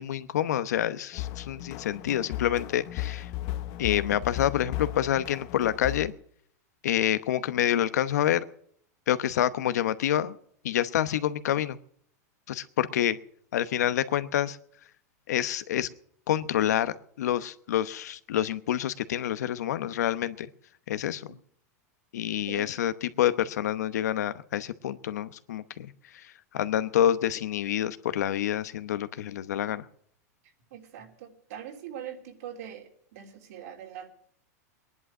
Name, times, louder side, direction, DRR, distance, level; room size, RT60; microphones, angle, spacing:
voice 1, 0.0-3.3 3.8-6.1 6.8-8.5 9.1-10.4 10.6-11.8 12.5-13.2 13.5-14.6 15.3-15.9 16.3-20.5 20.9-21.4 22.1-29.9, left 11 dB, 85° left, 13 dB, 0.9 m, -27 dB
sound 1, 1.1-6.1, left 14 dB, 45° left, 0.9 m, -35 dB
voice 2, 30.7-34.1, right 9 dB, 70° right, 2 dB, 3.4 m, -42 dB
20.0 x 11.0 x 6.1 m, 0.65 s
supercardioid pair, 135°, 9 cm